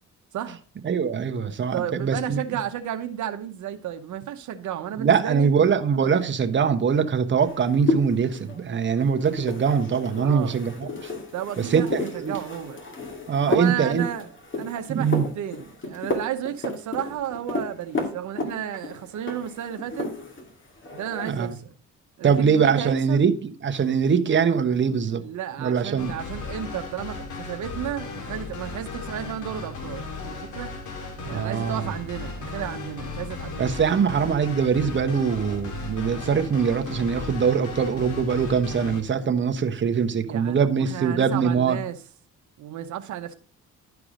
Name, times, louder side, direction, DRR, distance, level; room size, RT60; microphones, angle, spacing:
voice 1, 0.8-2.4 5.0-11.1 11.6-12.4 13.3-14.0 14.9-15.3 21.2-21.5 22.2-25.2 25.6-26.1 31.2-31.9 33.6-41.8, right 6 dB, 40° right, 1.1 m, -23 dB
voice 2, 1.7-5.5 10.2-10.6 11.3-12.8 13.5-14.3 14.6-20.1 20.9-21.6 22.2-23.2 25.2-30.7 31.3-33.8 40.3-42.0 42.6-43.3, right 10 dB, 70° right, 0.9 m, -32 dB
sound 1, 7.4-20.5 20.8-21.5, left 2 dB, 40° left, 2.5 m, -32 dB
sound 2, 26.0-39.0, left 4 dB, 75° left, 2.3 m, -36 dB
11.5 x 4.8 x 5.0 m
cardioid pair, 90°, 30 cm